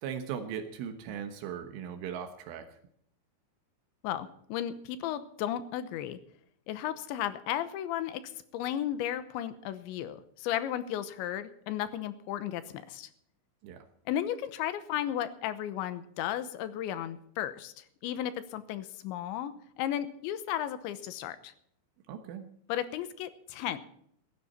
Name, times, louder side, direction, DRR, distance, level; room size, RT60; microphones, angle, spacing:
voice 1, 0.0-2.7 13.6-13.8 22.1-22.5, right 8 dB, 80° right, 7 dB, 3.6 m, -38 dB
voice 2, 4.0-6.2 6.7-8.2 8.5-13.1 14.1-21.5 22.7-23.8, left 11 dB, 80° left, 13 dB, 3.1 m, -34 dB
17.0 x 13.5 x 4.3 m, 0.69 s
omnidirectional pair, 5.6 m